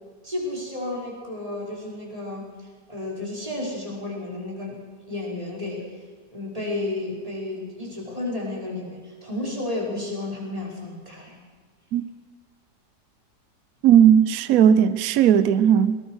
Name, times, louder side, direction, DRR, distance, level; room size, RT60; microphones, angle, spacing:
voice 1, 0.2-2.6 2.9-4.8 5.1-5.9 6.3-11.4, left 2 dB, 20° right, 5.3 m, -32 dB
voice 2, 13.8-16.0, right 9 dB, 65° right, 1.2 m, -16 dB
22.0 x 19.0 x 6.4 m
omnidirectional pair, 1.8 m